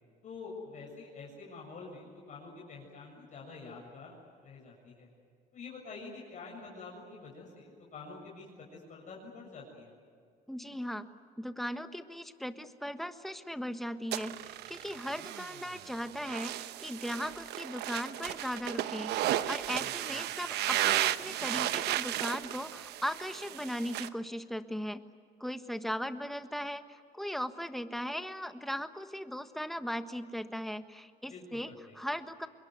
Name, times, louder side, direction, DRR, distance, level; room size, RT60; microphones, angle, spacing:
voice 1, 0.2-5.1 5.5-8.5 8.7-9.9 19.8-20.2 31.2-32.0, left 4 dB, 45° left, -2 dB, 7.2 m, -47 dB
voice 2, 10.5-11.1 11.4-25.0 25.4-31.7 31.9-32.5, equal, ahead, 9 dB, 1.4 m, -38 dB
sound 1, 14.1-24.1, right 13 dB, 80° right, 1.0 m, -34 dB
26.0 x 22.0 x 9.5 m, 2.2 s
cardioid pair, 110°, 17 cm